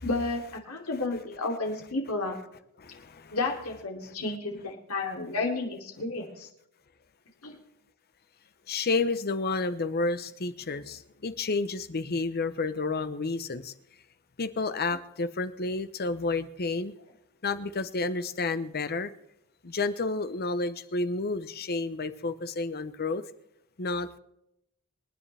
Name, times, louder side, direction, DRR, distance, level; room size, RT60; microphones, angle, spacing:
voice 1, 0.0-2.3 3.3-6.5 7.4-7.5, left 3 dB, 85° left, 1 dB, 3.0 m, -32 dB
voice 2, 2.8-3.4 8.7-13.7 14.4-16.9 17.4-19.1 19.6-23.2 23.8-24.2, left 3 dB, 45° left, 12 dB, 0.8 m, -30 dB
27.0 x 9.9 x 3.4 m, 0.78 s
head